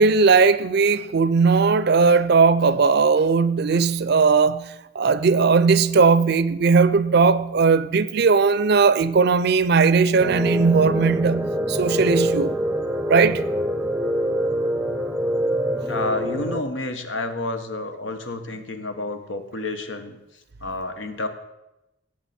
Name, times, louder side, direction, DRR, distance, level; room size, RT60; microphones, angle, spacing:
voice 1, 0.0-12.5 13.1-13.5, right 4 dB, 60° right, 0.5 m, -18 dB
sound 1, 10.2-16.6, equal, 5° right, 0.6 m, -25 dB
voice 2, 15.9-20.2 20.6-21.3, left 2 dB, 80° left, 1.2 m, -29 dB
17.5 x 7.9 x 4.3 m
head